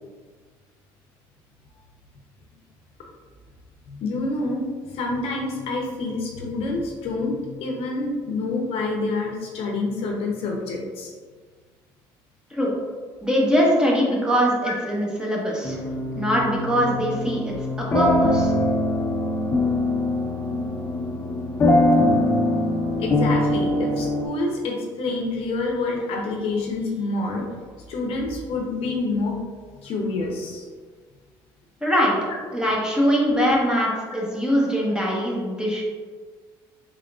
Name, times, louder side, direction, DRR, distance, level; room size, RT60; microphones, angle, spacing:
voice 1, 3.9-11.1 14.6-14.8 23.0-27.5 27.9-29.4 29.8-30.6 33.4-33.5, left 3 dB, 65° left, 0 dB, 0.7 m, -27 dB
voice 2, 13.2-15.8 16.2-17.5 17.9-18.5 31.8-32.2 32.5-35.8, equal, 5° right, -4 dB, 1.1 m, -22 dB
sound 1, 15.6-24.3, left 1 dB, 25° left, 0.6 m, -22 dB
3.6 x 3.5 x 2.4 m, 1.5 s
supercardioid pair, 70°, 11 cm